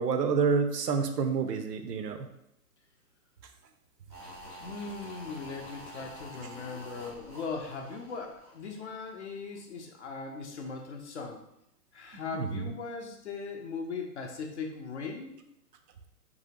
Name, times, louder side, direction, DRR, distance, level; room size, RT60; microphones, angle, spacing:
voice 1, 0.0-2.3 12.3-12.7, right 5 dB, 80° right, 7 dB, 0.6 m, -28 dB
sound 1, 4.1-9.3 9.5-9.6, equal, 20° right, 0.4 m, -47 dB
voice 2, 4.6-11.4 11.9-15.4, left 4 dB, 45° left, 2 dB, 0.5 m, -39 dB
2.9 x 2.7 x 2.8 m, 0.80 s
hypercardioid pair, 135°, 48 cm